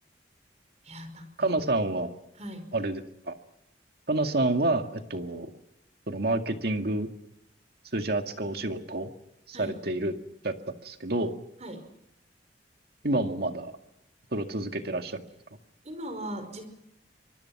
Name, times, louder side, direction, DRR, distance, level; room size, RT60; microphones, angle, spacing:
voice 1, 0.8-1.5 2.3-2.7 9.5-9.8 11.6-11.9 15.8-16.6, right 1 dB, 40° right, 9 dB, 5.0 m, -39 dB
voice 2, 1.4-2.1 2.7-3.0 3.3-3.4 4.1-5.5 6.1-7.1 7.9-9.1 9.5-10.1 10.4-11.3 13.0-13.7 14.3-15.2, right 2 dB, 60° right, 6 dB, 2.1 m, -28 dB
25.0 x 24.5 x 6.0 m, 0.87 s
head